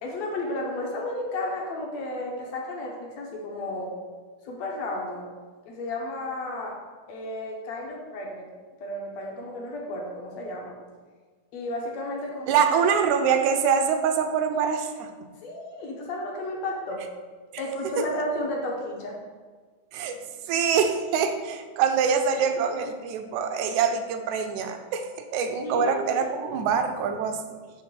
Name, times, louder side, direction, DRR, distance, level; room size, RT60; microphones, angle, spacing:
voice 1, 0.0-3.9 4.4-5.3 5.7-6.8 7.1-8.5 8.8-10.8 11.5-12.7 15.4-17.0 17.6-19.2 22.4-22.5 25.6-26.6, left 1 dB, 65° left, -1 dB, 1.9 m, -33 dB
voice 2, 12.5-15.1 18.0-18.1 19.9-20.2 20.5-27.6, right 6 dB, 80° right, 6 dB, 1.9 m, -24 dB
7.9 x 3.3 x 6.0 m, 1.5 s
omnidirectional pair, 3.6 m